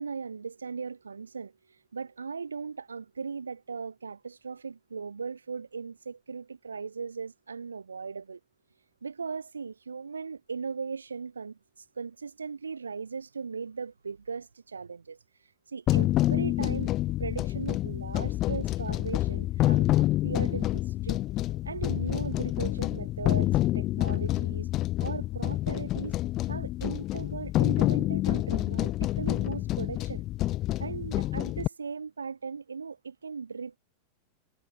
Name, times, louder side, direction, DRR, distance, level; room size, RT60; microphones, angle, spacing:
voice 1, 0.0-8.4 9.0-15.2 15.7-16.9 17.2-21.2 21.6-24.7 25.0-26.1 26.5-30.2 30.8-33.8, right 5 dB, 75° right, 2.7 m, -38 dB
sound 1, 15.9-31.7, left 15 dB, 35° left, 1.0 m, -28 dB
figure-of-eight pair, 90°, 0 cm